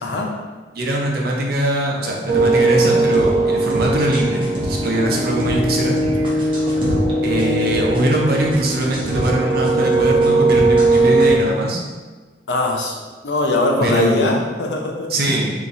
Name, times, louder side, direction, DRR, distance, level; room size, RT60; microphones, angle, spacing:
voice 1, 0.7-6.0 7.2-11.8 13.8-14.4 15.1-15.7, right 1 dB, 60° right, -1 dB, 0.6 m, -21 dB
sound 1, 2.3-11.3, right 2 dB, 30° right, 0.8 m, -18 dB
voice 2, 12.5-13.0 13.2-15.1, left 2 dB, 80° left, 1 dB, 0.6 m, -20 dB
2.9 x 2.5 x 4.0 m, 1.3 s
head